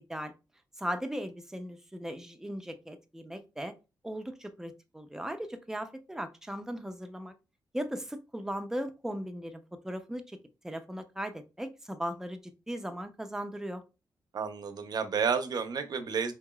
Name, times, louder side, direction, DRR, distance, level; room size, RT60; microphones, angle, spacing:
voice 1, 0.8-3.7 4.0-7.3 7.7-10.4 10.6-12.4 12.7-13.8, equal, 5° right, 0.5 m, -37 dB
voice 2, 14.3-16.3, right 6 dB, 60° right, 0.6 m, -31 dB
4.6 x 3.0 x 2.2 m
cardioid pair, 105°, 8 cm